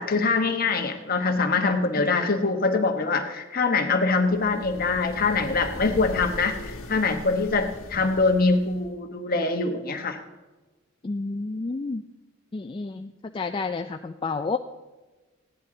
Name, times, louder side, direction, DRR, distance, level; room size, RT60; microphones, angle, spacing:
voice 1, 0.0-10.2, left 3 dB, 45° left, 5 dB, 1.1 m, -24 dB
voice 2, 2.0-2.3 11.0-12.1 12.5-14.6, left 3 dB, 25° left, 6 dB, 0.3 m, -30 dB
sound 1, 4.2-9.0, left 1 dB, 85° left, 1.2 m, -40 dB
15.5 x 10.5 x 3.8 m, 1.2 s
head